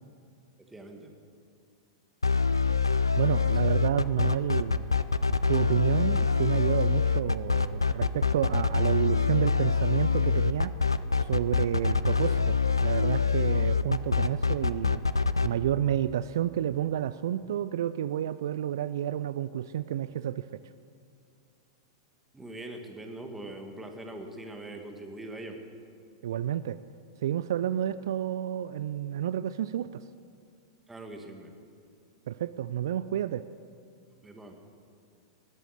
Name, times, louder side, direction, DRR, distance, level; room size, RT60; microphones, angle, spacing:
voice 1, 0.7-1.1 3.4-3.5 22.3-25.6 30.9-31.5 34.2-34.7, right 1 dB, 10° right, 3 dB, 1.9 m, -42 dB
sound 1, 2.2-15.5, left 5 dB, 90° left, 0.4 m, -25 dB
voice 2, 3.2-5.0 5.3-10.7 11.2-15.0 15.4-20.5 26.2-26.8 27.2-30.0 32.3-33.4, right 11 dB, 65° right, 14 dB, 0.4 m, -30 dB
19.5 x 9.0 x 6.5 m, 2.3 s
figure-of-eight pair, 100°, 2 cm